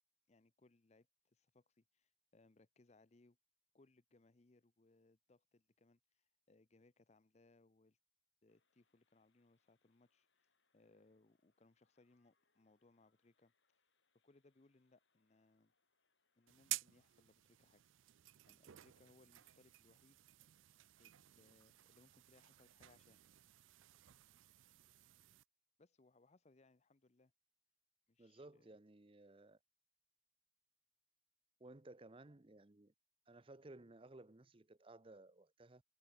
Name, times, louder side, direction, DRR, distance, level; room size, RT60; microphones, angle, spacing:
voice 1, 0.3-3.4 3.7-8.0 8.4-13.5 14.2-15.7 16.3-17.8 18.5-20.2 21.0-23.2 25.8-27.3 28.1-28.8, left 2 dB, 35° left, 0.6 m, -71 dB
sound 1, 8.5-17.2, left 4 dB, 65° left, 7.9 m, -87 dB
sound 2, 16.5-25.4, right 17 dB, 75° right, 0.4 m, -52 dB
voice 2, 28.2-29.6 31.6-32.9 33.3-35.8, right 2 dB, 25° right, 0.7 m, -58 dB
head